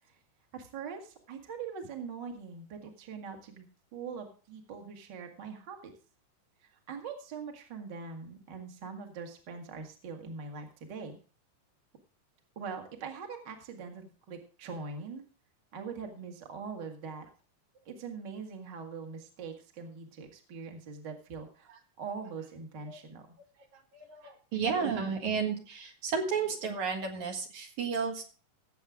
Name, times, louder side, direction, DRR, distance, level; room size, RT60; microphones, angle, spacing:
voice 1, 0.5-3.6 3.9-5.9 6.6-11.2 12.6-15.2 15.7-17.3 17.9-21.7 22.0-23.3, right 5 dB, 35° right, 3 dB, 2.1 m, -42 dB
voice 2, 24.0-28.2, right 5 dB, 60° right, 2 dB, 3.0 m, -32 dB
17.5 x 7.9 x 3.6 m, 0.38 s
omnidirectional pair, 3.9 m